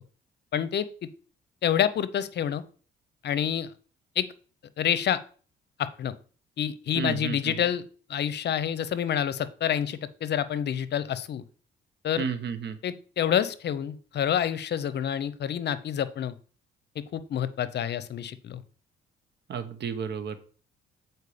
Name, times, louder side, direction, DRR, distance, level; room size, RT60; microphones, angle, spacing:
voice 1, 0.5-0.9 1.6-2.6 3.2-3.7 4.2-4.3 4.8-5.2 5.8-6.1 6.6-7.8 8.1-11.4 12.0-12.3 12.8-16.3 17.1-18.6, left 9 dB, 60° left, 15 dB, 0.7 m, -28 dB
voice 2, 6.9-7.5 12.2-12.8 19.5-20.4, right 6 dB, 60° right, 10 dB, 1.1 m, -32 dB
8.3 x 4.5 x 5.0 m, 0.40 s
cardioid pair, 90°, 20 cm